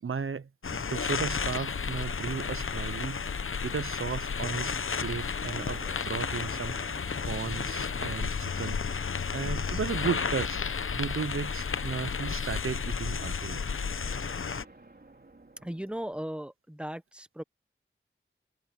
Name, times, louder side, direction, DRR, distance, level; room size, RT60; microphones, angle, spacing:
voice 1, 0.0-3.3 3.6-4.8 5.0-6.7 7.2-8.8 9.3-10.6 10.9-13.6, right 6 dB, 80° right, 0.7 m, -35 dB
sound 1, 0.6-14.6, left 5 dB, 80° left, 0.8 m, -32 dB
sound 2, 5.5-12.8 13.7-16.2, right 2 dB, 50° right, 3.5 m, -55 dB
voice 2, 15.6-17.4, right 1 dB, 5° right, 1.1 m, -37 dB
wide cardioid pair, 55°, 21 cm